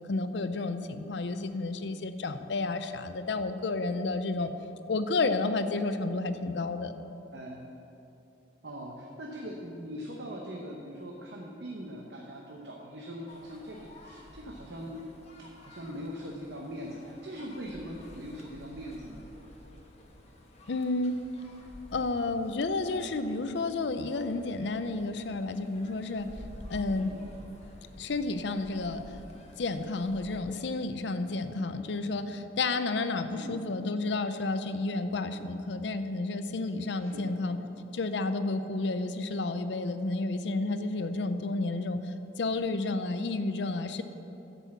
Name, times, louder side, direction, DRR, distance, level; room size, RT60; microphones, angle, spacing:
voice 1, 0.1-4.5 4.9-6.9 20.7-21.2 21.9-26.3 26.7-27.1 28.0-29.0 29.6-37.6 37.9-42.0 42.4-44.0, left 3 dB, 70° left, 10 dB, 0.6 m, -31 dB
voice 2, 7.3-7.7 8.6-15.1 15.5-19.2 26.9-27.2 33.3-33.6 37.0-37.4, equal, 65° right, -1 dB, 0.9 m, -41 dB
sound 1, 13.3-30.4, left 1 dB, 35° left, 1.2 m, -51 dB
11.5 x 5.5 x 7.1 m, 2.9 s
head